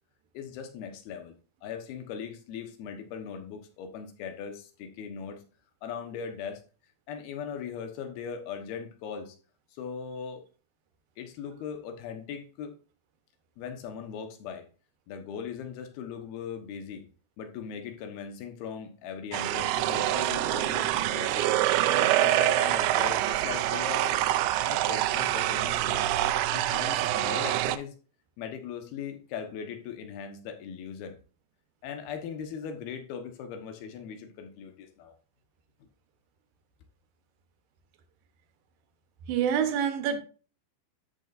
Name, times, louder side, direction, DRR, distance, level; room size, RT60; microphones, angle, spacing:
voice 1, 0.3-1.4 1.6-5.4 5.8-6.6 7.1-9.4 9.7-10.4 11.2-12.7 13.6-14.7 15.1-17.0 17.4-21.5 21.9-24.3 24.6-26.1 26.5-27.9 28.4-31.2 31.8-35.1, left 7 dB, 80° left, 3.1 m, -39 dB
sound 1, 19.3-27.8, right 14 dB, 90° right, 2.6 m, -26 dB
voice 2, 39.3-40.2, right 8 dB, 75° right, 2.7 m, -26 dB
13.0 x 6.7 x 2.6 m
omnidirectional pair, 4.5 m